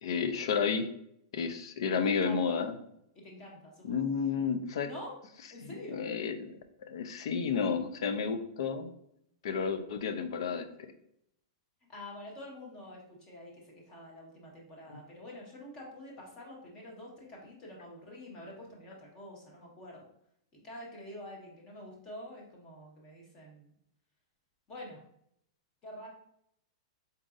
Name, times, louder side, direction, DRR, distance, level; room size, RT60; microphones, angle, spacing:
voice 1, 0.0-0.9 1.3-2.8 3.8-4.9 5.6-6.5 6.9-8.9 9.4-10.7, left 6 dB, 70° left, 9 dB, 0.5 m, -31 dB
voice 2, 1.9-2.7 3.1-4.1 4.8-5.1 5.5-6.0 11.9-20.1 20.6-23.7 24.7-25.0 25.8-26.1, left 1 dB, 25° left, -2 dB, 1.2 m, -47 dB
4.0 x 3.8 x 2.5 m, 0.74 s
supercardioid pair, 160°, 3 cm